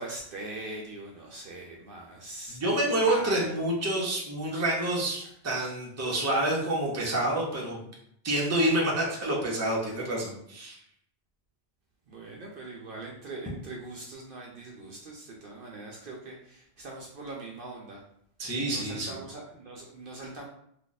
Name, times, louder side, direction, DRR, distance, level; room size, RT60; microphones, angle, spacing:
voice 1, 0.0-2.6 2.9-3.5 5.2-5.3 12.1-18.0 18.7-20.5, right 2 dB, 60° right, -2 dB, 0.7 m, -41 dB
voice 2, 2.5-7.8 8.2-10.8 18.4-19.1, right 1 dB, 15° right, -3 dB, 0.7 m, -28 dB
2.9 x 2.4 x 3.9 m, 0.71 s
omnidirectional pair, 1.1 m